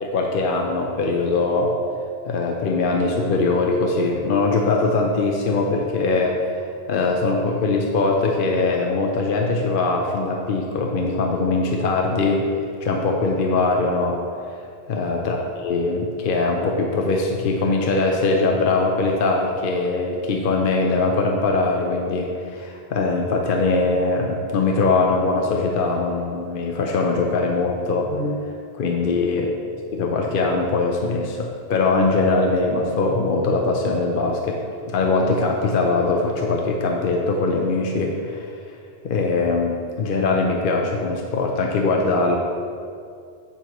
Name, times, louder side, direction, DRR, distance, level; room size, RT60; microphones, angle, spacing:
voice 1, 0.0-1.7 2.3-6.6 6.9-12.5 12.8-14.2 14.9-29.5 29.9-34.6 34.9-38.5 39.0-42.4, left 3 dB, 60° left, 1 dB, 0.8 m, -21 dB
8.0 x 6.9 x 3.0 m, 2.3 s
omnidirectional pair, 1.0 m